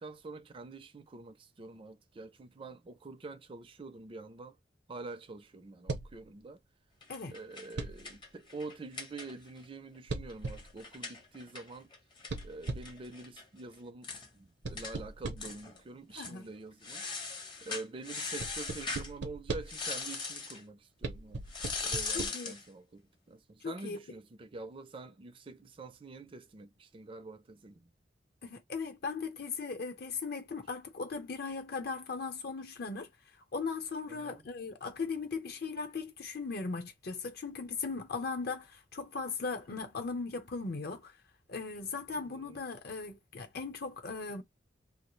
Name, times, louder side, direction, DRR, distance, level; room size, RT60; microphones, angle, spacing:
voice 1, 0.0-4.6 4.9-6.6 7.3-11.9 12.4-14.1 14.3-17.1 17.6-21.4 21.8-27.9 34.1-34.4 42.3-42.6, right 3 dB, 30° right, 0.4 m, -46 dB
sound 1, 5.9-6.2 7.8-8.2 10.1-10.8 12.3-13.1 14.6-15.6 18.4-19.9 21.0-22.3, right 3 dB, 80° right, 0.6 m, -39 dB
sound 2, 7.0-9.6 9.9-10.0 10.3-13.4 13.7-13.8 14.0-14.3 14.8-14.9 15.4-15.8 16.1-16.4 16.8-19.1 19.7-20.6 21.5-22.6, left 4 dB, 25° left, 0.6 m, -40 dB
voice 2, 16.2-16.5 22.1-22.5 23.6-24.0 28.4-33.1 33.5-41.1 41.5-44.4, left 4 dB, 60° left, 0.7 m, -38 dB
2.3 x 2.0 x 3.0 m
head